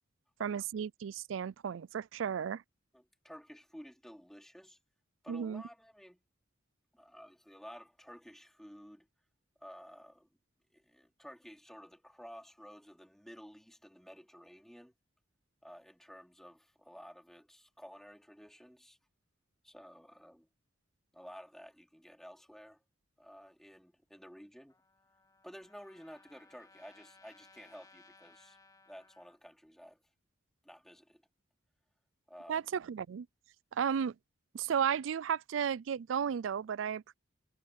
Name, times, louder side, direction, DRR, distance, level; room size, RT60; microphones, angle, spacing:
voice 1, 0.4-2.6 5.3-5.6 32.5-33.3 33.7-34.1 34.5-37.1, right 7 dB, 75° right, 0.4 m, -34 dB
voice 2, 2.9-4.8 5.2-6.2 6.9-9.1 9.6-10.3 10.7-14.9 15.6-19.0 19.6-20.5 21.1-22.8 23.2-24.8 25.4-28.6 28.9-30.0 30.6-31.2 32.3-32.7, equal, ahead, 3.3 m, -53 dB
Trumpet, 24.7-29.4, left 3 dB, 20° left, 3.0 m, -62 dB
head